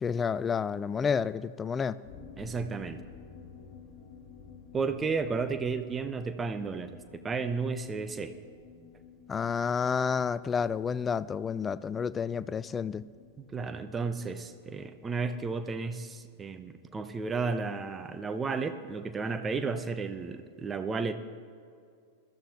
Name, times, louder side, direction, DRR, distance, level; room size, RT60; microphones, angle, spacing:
voice 1, 0.0-2.0 9.3-13.0, left 6 dB, 20° left, 17 dB, 0.4 m, -30 dB
sound 1, 2.0-17.4 17.7-17.8 18.1-18.2, left 6 dB, 50° left, 2.0 m, -53 dB
voice 2, 2.4-3.0 4.7-8.3 13.4-21.1, right 4 dB, 20° right, 9 dB, 0.8 m, -33 dB
21.0 x 13.5 x 3.0 m, 2.3 s
figure-of-eight pair, 90°, 0 cm